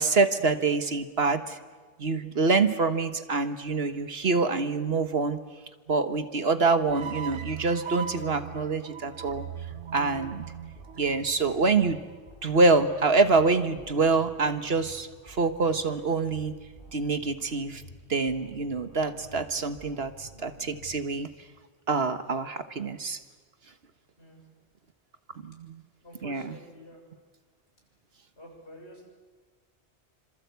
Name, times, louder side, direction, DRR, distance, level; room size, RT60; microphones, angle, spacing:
voice 1, 0.0-1.6 2.0-5.4 5.9-9.4 9.9-10.4 11.0-12.0 12.4-16.5 16.9-17.8 18.1-21.3 21.9-23.2 25.4-25.8 26.2-26.5, right 3 dB, 65° right, 9 dB, 1.6 m, -26 dB
sound 1, 6.9-12.1, right 9 dB, 90° right, 1.4 m, -39 dB
sound 2, 9.3-21.5, equal, 50° left, 7.3 m, -50 dB
voice 2, 26.0-27.0 28.4-29.1, left 1 dB, 75° left, 1 dB, 7.6 m, -48 dB
27.5 x 26.0 x 8.2 m, 1.4 s
omnidirectional pair, 1.2 m